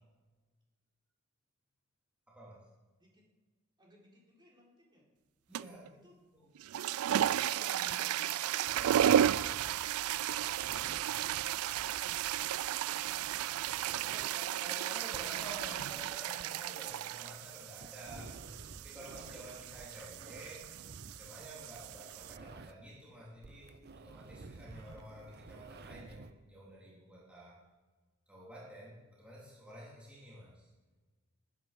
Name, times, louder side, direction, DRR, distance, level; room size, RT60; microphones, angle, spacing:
voice 1, 2.3-2.7 5.5-5.9 6.3-6.5 7.1-8.2 8.6-9.6 13.1-13.3 14.0-27.6 28.3-30.7, right 1 dB, 5° right, -6 dB, 3.8 m, -51 dB
voice 2, 3.8-5.1 5.9-6.2 11.0-12.9 13.8-15.3, equal, 20° right, -3 dB, 4.0 m, -64 dB
sound 1, 5.5-5.9 6.5-22.4, right 10 dB, 85° right, 0.3 m, -34 dB
sound 2, 8.6-23.0 23.3-26.3, right 3 dB, 50° right, 0.7 m, -53 dB
19.5 x 9.3 x 5.4 m, 1.3 s
head